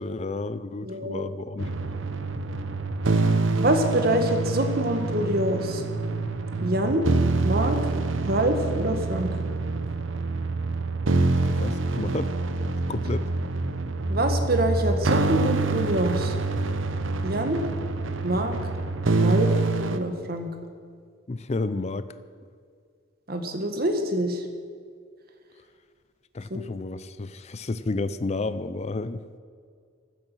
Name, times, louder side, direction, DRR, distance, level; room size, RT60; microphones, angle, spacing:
voice 1, 0.0-1.9 11.4-12.3 12.9-13.3 21.3-22.1 26.3-29.2, left 3 dB, 35° left, 14 dB, 0.5 m, -31 dB
voice 2, 0.8-1.3 3.6-5.8 6.6-7.0 7.4-7.9 8.2-9.4 14.1-16.3 17.2-17.6 18.2-18.6 19.2-19.5 19.9-20.5 23.3-24.4 26.5-26.6, right 1 dB, 50° right, 6 dB, 1.7 m, -25 dB
sound 1, 1.6-20.0, right 3 dB, 75° right, 0.9 m, -26 dB
15.5 x 12.5 x 6.2 m, 2.1 s
head